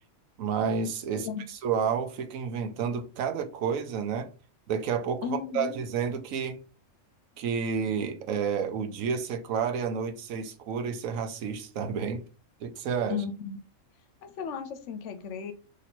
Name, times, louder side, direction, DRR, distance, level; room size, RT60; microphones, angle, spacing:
voice 1, 0.4-1.3 1.6-4.3 4.7-6.6 7.4-12.2 12.6-13.2, right 6 dB, 85° right, 1.1 m, -30 dB
voice 2, 5.2-5.8 13.1-13.6 14.2-15.5, left 7 dB, 70° left, 0.8 m, -35 dB
3.1 x 2.8 x 4.2 m
omnidirectional pair, 1.4 m